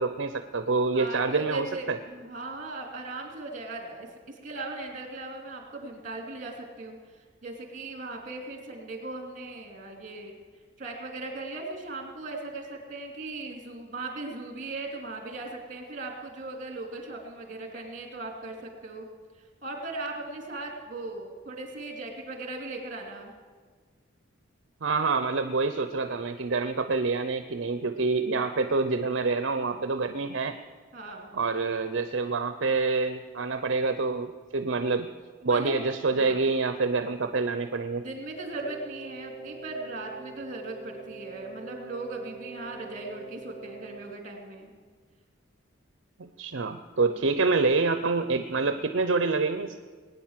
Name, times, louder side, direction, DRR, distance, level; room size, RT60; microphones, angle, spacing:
voice 1, 0.0-2.0 24.8-30.6 31.3-35.1 35.4-38.0 46.2-49.8, right 3 dB, 60° right, 9 dB, 0.6 m, -27 dB
voice 2, 0.9-10.3 10.8-19.0 19.6-23.3 30.9-31.4 35.4-35.7 36.1-36.5 38.0-44.7 47.1-47.3, right 2 dB, 40° right, 2 dB, 3.0 m, -38 dB
Wind instrument woodwind instrument, 38.4-44.2, right 3 dB, 80° left, 6.9 m, -44 dB
20.0 x 9.6 x 7.4 m, 1.5 s
head